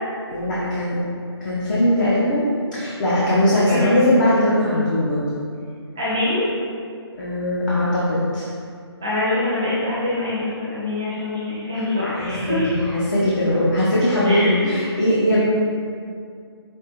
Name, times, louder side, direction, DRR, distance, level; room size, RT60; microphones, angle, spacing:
voice 1, 0.3-1.0 1.4-5.3 7.1-8.5 12.0-15.4, left 1 dB, 40° left, -8 dB, 0.7 m, -20 dB
voice 2, 3.6-4.0 6.0-6.5 9.0-12.8 14.2-14.5, left 1 dB, 10° right, -10 dB, 0.3 m, -24 dB
5.2 x 2.9 x 2.9 m, 2.3 s
hypercardioid pair, 170°, 14 cm